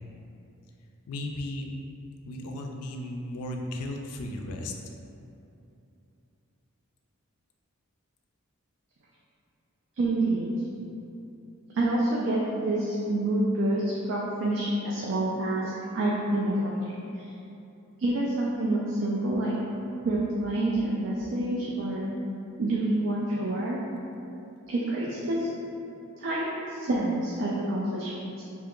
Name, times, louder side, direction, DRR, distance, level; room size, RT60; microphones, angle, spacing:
voice 1, 1.1-1.7 2.3-4.7, left 1 dB, 85° left, 2 dB, 0.4 m, -35 dB
voice 2, 10.0-10.5 11.7-17.3 18.0-19.5 20.0-22.0 22.6-23.8 24.7-25.5 26.2-28.1, right 1 dB, 55° right, -5 dB, 0.3 m, -27 dB
2.8 x 2.2 x 3.7 m, 2.7 s
head